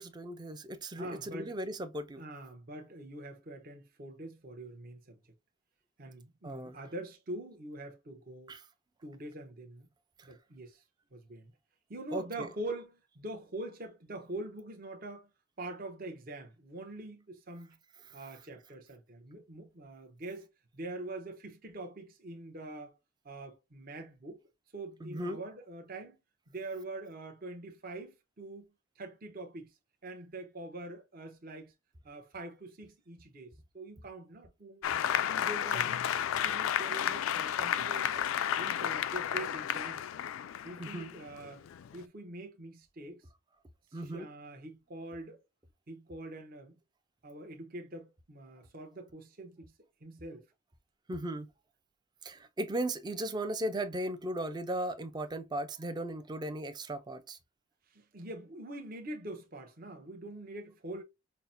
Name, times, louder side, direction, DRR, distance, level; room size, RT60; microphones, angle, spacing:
voice 1, 0.0-2.2 6.4-6.8 8.5-8.6 12.1-12.5 25.0-25.4 40.8-41.1 43.9-44.3 51.1-51.5 52.2-57.4, right 1 dB, 20° right, 0.4 m, -37 dB
voice 2, 1.0-1.7 2.2-5.2 6.0-8.6 9.0-9.9 10.2-10.8 11.1-11.5 11.9-15.3 15.6-17.8 18.1-23.0 23.2-24.4 24.7-26.2 26.5-28.7 29.0-29.7 30.0-31.7 32.0-34.8 35.3-38.3 38.6-40.1 40.6-41.7 41.9-43.2 43.9-45.4 45.9-46.7 47.2-49.7 50.0-50.5 57.9-61.0, right 2 dB, 45° right, 0.8 m, -44 dB
Applause, 34.8-42.0, left 10 dB, 70° left, 0.3 m, -32 dB
5.6 x 2.1 x 2.6 m
head